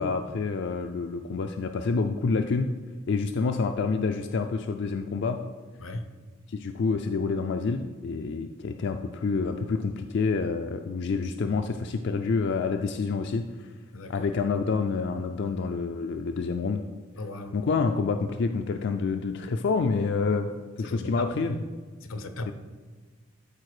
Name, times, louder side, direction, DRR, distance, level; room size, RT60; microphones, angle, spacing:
voice 1, 0.0-2.7 3.1-5.4 6.5-13.7 14.1-16.8 17.5-20.5 20.8-21.6 22.5-22.6, left 4 dB, 60° left, 6 dB, 0.4 m, -28 dB
voice 2, 13.9-14.3 17.2-17.6 20.8-21.6 22.0-22.5, left 2 dB, 85° left, 9 dB, 0.8 m, -36 dB
12.0 x 4.5 x 4.9 m, 1.5 s
head